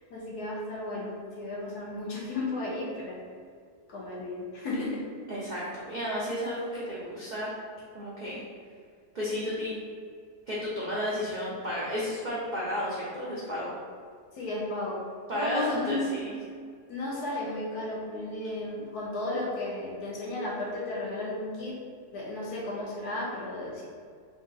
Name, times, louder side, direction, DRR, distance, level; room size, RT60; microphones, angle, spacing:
voice 1, 0.1-3.2 3.9-5.0 14.3-15.0 15.3-16.2 16.9-21.8 22.1-23.9, left 2 dB, 75° left, -4 dB, 1.4 m, -34 dB
voice 2, 5.3-7.5 7.9-8.4 9.1-9.8 10.5-13.7 15.3-16.3, equal, 75° right, -7 dB, 0.4 m, -32 dB
3.6 x 2.6 x 3.9 m, 2.1 s
omnidirectional pair, 1.7 m